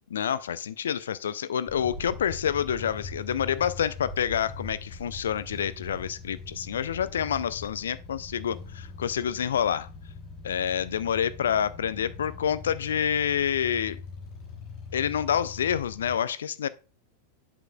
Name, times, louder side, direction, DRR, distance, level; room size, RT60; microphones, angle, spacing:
voice 1, 0.1-9.9 10.4-14.0 14.9-16.7, left 8 dB, 65° left, 0.3 m, -28 dB
sound 1, 1.7-16.2, left 3 dB, 35° left, 3.5 m, -42 dB
7.8 x 6.8 x 2.3 m
figure-of-eight pair, 90°, 0 cm